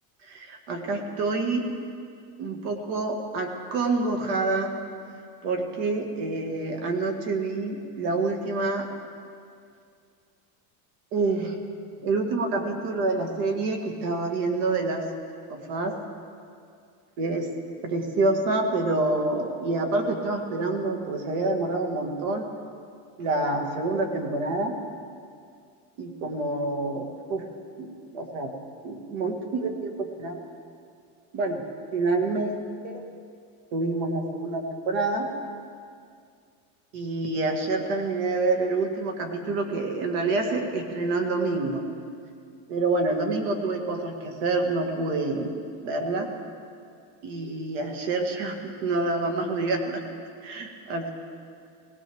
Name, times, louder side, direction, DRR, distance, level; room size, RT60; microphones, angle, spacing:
voice 1, 0.2-1.7 2.4-4.8 5.4-8.9 11.1-11.7 12.0-15.1 15.5-16.0 17.2-17.5 17.8-22.5 23.2-24.8 26.0-27.4 27.8-28.5 28.8-30.5 31.3-31.6 31.9-33.1 33.7-35.3 36.9-41.8 42.7-46.3 47.2-50.0 50.4-51.1, right 3 dB, 50° right, 3 dB, 2.0 m, -27 dB
19.5 x 18.5 x 3.6 m, 2.3 s
cardioid pair, 180°, 45 cm